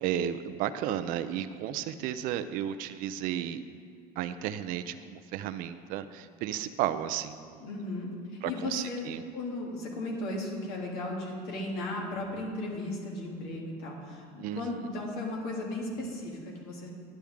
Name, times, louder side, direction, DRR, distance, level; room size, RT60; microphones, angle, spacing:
voice 1, 0.0-3.6 4.2-7.7 8.4-9.2 14.4-14.6, right 10 dB, 65° right, 11 dB, 0.5 m, -33 dB
voice 2, 7.6-16.9, left 2 dB, 70° left, -2 dB, 2.7 m, -36 dB
11.5 x 10.0 x 3.6 m, 2.2 s
cardioid pair, 130°, 16 cm